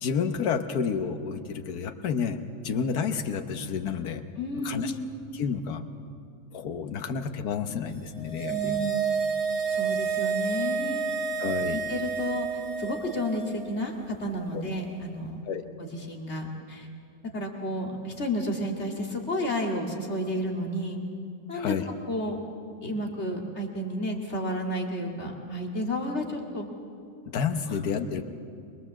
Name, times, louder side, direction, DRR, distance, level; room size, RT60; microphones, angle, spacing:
voice 1, 0.0-2.4 2.6-4.2 4.6-4.9 5.3-5.8 6.5-8.8 11.4-11.8 14.5-14.6 15.5-15.6 21.5-21.9 27.3-28.2, left 6 dB, 80° left, 7 dB, 1.5 m, -30 dB
voice 2, 4.4-4.9 8.5-9.1 9.7-11.0 11.7-12.5 12.8-15.4 15.8-16.9 17.3-21.0 21.5-21.7 22.1-22.4 22.8-26.7, equal, 45° left, 0 dB, 2.4 m, -31 dB
sound 1, 8.0-13.4 13.7-13.8, right 6 dB, 65° right, 7.3 m, -29 dB
24.0 x 20.5 x 7.4 m, 2.4 s
omnidirectional pair, 1.6 m